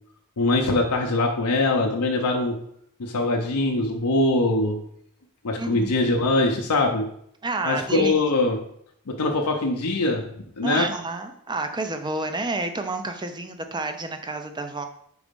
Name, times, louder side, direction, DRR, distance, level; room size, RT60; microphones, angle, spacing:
voice 1, 0.4-2.6 3.0-4.8 5.4-7.1 7.6-8.6 9.1-10.3 10.6-10.9, left 2 dB, 85° left, 1 dB, 0.7 m, -22 dB
voice 2, 5.6-5.9 7.4-8.1 10.6-14.8, right 2 dB, 20° right, 7 dB, 0.5 m, -29 dB
4.8 x 4.1 x 5.2 m, 0.69 s
head